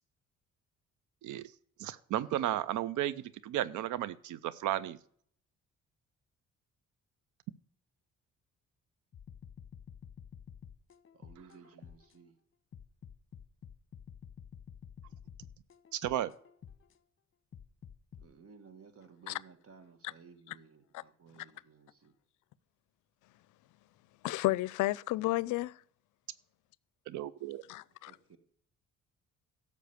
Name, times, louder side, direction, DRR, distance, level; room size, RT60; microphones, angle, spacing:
voice 1, 1.8-5.0 15.9-16.3 27.1-27.6, right 12 dB, 75° right, 0.5 m, -34 dB
sound 1, 9.1-12.2 12.7-17.0 17.5-18.3, left 8 dB, 40° left, 1.0 m, -51 dB
voice 2, 11.1-12.4 18.2-22.1 27.9-28.4, right 5 dB, 50° right, 1.7 m, -57 dB
voice 3, 24.2-25.7 27.7-28.1, left 18 dB, 80° left, 0.5 m, -32 dB
12.0 x 7.1 x 6.6 m
cardioid pair, 90°, 30 cm